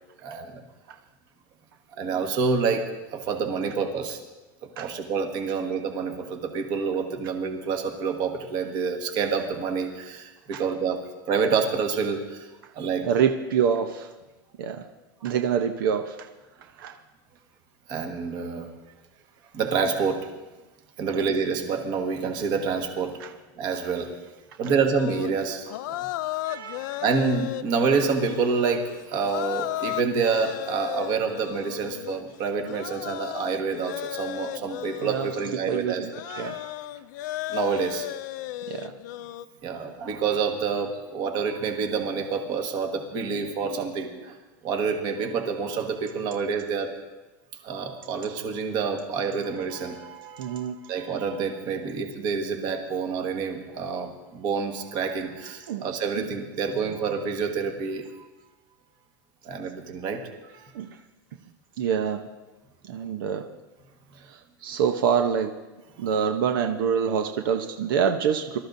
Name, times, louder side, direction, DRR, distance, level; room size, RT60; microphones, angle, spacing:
voice 1, 0.2-0.6 2.0-4.2 4.6-11.0 11.3-12.5 12.7-13.1 17.9-18.7 19.5-20.3 21.0-23.2 23.6-24.1 24.6-26.1 27.0-36.1 37.5-38.1 39.6-44.4 44.6-46.9 47.6-58.1 59.4-60.2, right 5 dB, 35° right, 4 dB, 1.6 m, -28 dB
voice 2, 13.1-14.1 14.6-14.8 15.2-16.2 16.8-16.9 23.2-23.3 24.6-24.8 26.4-27.0 35.0-35.3 35.7-36.7 38.7-38.9 50.4-50.8 55.7-55.8 56.1-56.3 60.7-60.9 61.8-62.2 62.8-63.4 64.3-65.5 66.0-68.6, right 7 dB, 75° right, 5 dB, 0.9 m, -26 dB
sound 1, 25.0-35.6 36.0-39.5, left 15 dB, 60° left, 0.4 m, -35 dB
24.0 x 13.0 x 2.7 m, 1.1 s
supercardioid pair, 175°, 12 cm